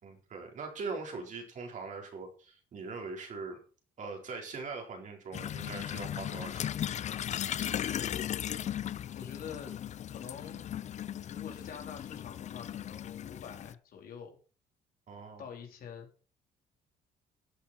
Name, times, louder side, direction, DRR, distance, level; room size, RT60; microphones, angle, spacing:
voice 1, 0.0-3.6 4.0-6.7 15.1-15.4, right 4 dB, 50° right, 2 dB, 4.3 m, -41 dB
sound 1, 5.3-13.7, left 10 dB, 45° left, 0.5 m, -37 dB
voice 2, 7.8-8.5 9.1-9.7 10.1-10.6 11.3-14.4 15.4-16.1, left 7 dB, 60° left, 2 dB, 3.9 m, -46 dB
14.0 x 8.6 x 4.4 m, 0.38 s
cardioid pair, 110°, 17 cm